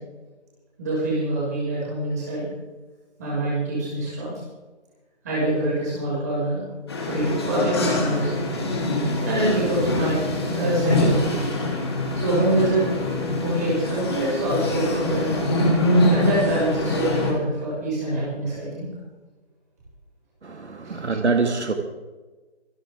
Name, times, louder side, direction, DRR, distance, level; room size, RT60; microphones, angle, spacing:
voice 1, 0.8-2.5 3.2-4.3 5.2-6.6 7.1-8.4 9.2-10.2 10.5-11.3 12.1-12.9 13.4-15.4 16.1-18.9 20.8-20.9, right 1 dB, 15° right, -7 dB, 6.0 m, -25 dB
sound 1, 6.9-17.3, left 1 dB, 20° left, 2.9 m, -24 dB
voice 2, 20.4-21.7, right 4 dB, 75° right, 5 dB, 2.2 m, -24 dB
26.0 x 12.0 x 3.7 m, 1.2 s
figure-of-eight pair, 175°, 35 cm